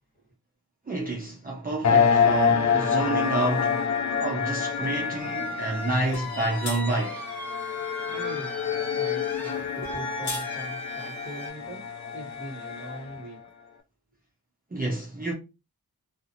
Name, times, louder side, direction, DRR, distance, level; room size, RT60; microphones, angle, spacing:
voice 1, 0.9-3.8 4.2-7.2 14.7-15.3, right 2 dB, 25° right, 0.6 m, -29 dB
sound 1, 1.8-13.2, left 7 dB, 50° left, 0.5 m, -27 dB
sound 2, 5.2-11.5, equal, 5° left, 0.9 m, -38 dB
sound 3, 6.1-6.3 6.6-6.8 9.8-10.5, left 3 dB, 85° left, 1.1 m, -34 dB
voice 2, 8.0-11.8 12.1-13.4, right 1 dB, 20° left, 1.7 m, -41 dB
2.7 x 2.5 x 2.7 m
wide cardioid pair, 105°, 38 cm